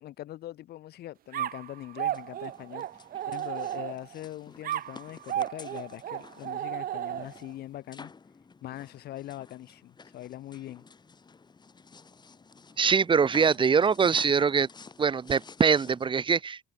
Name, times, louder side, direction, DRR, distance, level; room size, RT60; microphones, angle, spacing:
voice 1, 0.0-8.1 8.6-10.9, left 14 dB, 70° left, 3.9 m, -42 dB
sound 1, 1.3-4.2 4.6-7.5, right 12 dB, 60° right, 1.5 m, -34 dB
sound 2, 2.0-16.1, left 4 dB, 25° left, 5.0 m, -51 dB
voice 2, 12.8-14.7 15.0-16.6, right 6 dB, 30° right, 0.9 m, -23 dB
cardioid pair, 110°, 17 cm